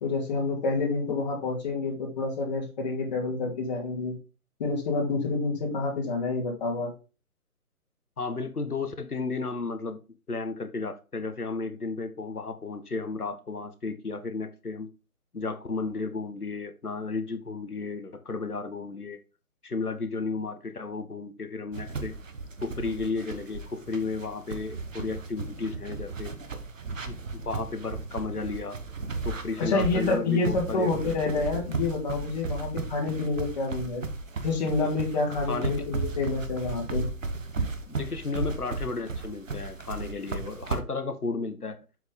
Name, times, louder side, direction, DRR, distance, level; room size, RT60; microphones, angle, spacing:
voice 1, 0.0-4.1 4.6-6.9 29.6-34.0 34.4-37.1 37.6-37.7, left 3 dB, 30° left, -2 dB, 2.5 m, -28 dB
voice 2, 8.2-10.0 10.3-14.9 15.3-19.2 19.6-22.2 22.6-26.3 27.1-28.8 29.2-31.4 35.5-35.8 37.9-41.8, left 4 dB, 75° left, 9 dB, 1.6 m, -33 dB
sound 1, 21.7-40.8, right 3 dB, 55° right, 1.2 m, -35 dB
7.4 x 6.0 x 3.9 m, 0.31 s
figure-of-eight pair, 145°, 45 cm